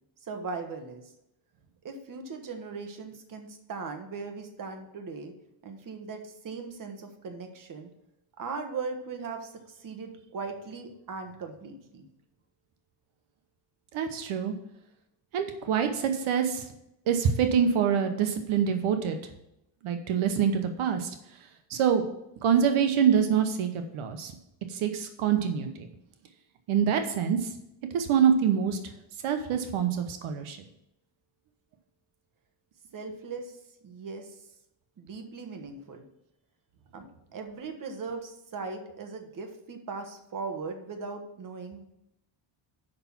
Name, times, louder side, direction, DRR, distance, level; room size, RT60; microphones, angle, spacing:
voice 1, 0.2-1.0 1.8-5.3 5.6-7.9 8.4-12.1 32.9-33.6 33.8-34.4 35.0-36.0 36.9-41.9, right 4 dB, 40° right, 5 dB, 1.4 m, -39 dB
voice 2, 13.9-14.5 15.3-16.6 17.1-19.2 19.8-21.1 21.7-22.0 22.4-24.3 24.7-25.9 26.7-27.5 27.9-28.8 29.2-30.6, right 7 dB, 75° right, 7 dB, 1.1 m, -25 dB
6.7 x 5.8 x 7.3 m, 0.83 s
cardioid pair, 125°, 49 cm